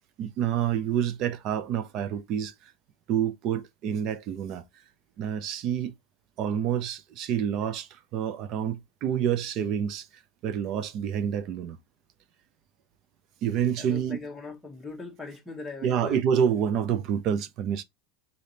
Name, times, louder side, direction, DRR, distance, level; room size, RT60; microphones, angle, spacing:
voice 1, 0.2-2.5 3.1-4.6 5.2-5.9 6.4-10.0 10.4-11.8 13.4-14.2 15.8-17.8, right 8 dB, 35° right, 0.4 m, -28 dB
voice 2, 13.8-16.4, left 3 dB, 5° left, 0.9 m, -40 dB
4.0 x 3.3 x 2.7 m
supercardioid pair, 175°, 0 cm